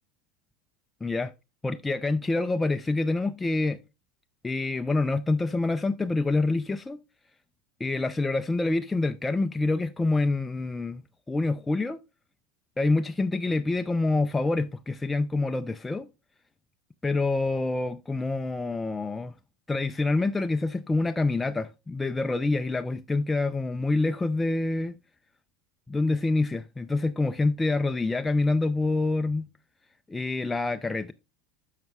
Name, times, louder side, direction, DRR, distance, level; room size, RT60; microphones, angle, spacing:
voice 1, 1.0-1.3 1.6-3.8 4.4-7.0 7.8-11.0 11.3-12.0 12.8-16.1 17.0-19.3 19.7-24.9 25.9-29.5 30.1-31.1, left 3 dB, 15° left, 0.4 m, -26 dB
10.5 x 6.5 x 2.3 m
hypercardioid pair, 80°, 0 cm